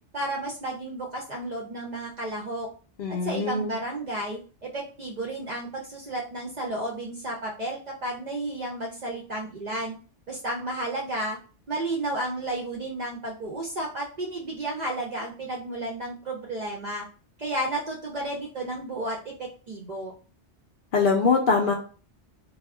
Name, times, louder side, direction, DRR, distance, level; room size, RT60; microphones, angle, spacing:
voice 1, 0.1-2.7 3.2-10.0 10.3-11.4 11.7-17.1 17.4-20.1, right 1 dB, 55° right, -1 dB, 0.5 m, -32 dB
voice 2, 3.0-3.7 20.9-21.7, left 4 dB, 60° left, 1 dB, 0.6 m, -23 dB
2.2 x 2.1 x 3.4 m, 0.37 s
omnidirectional pair, 1.2 m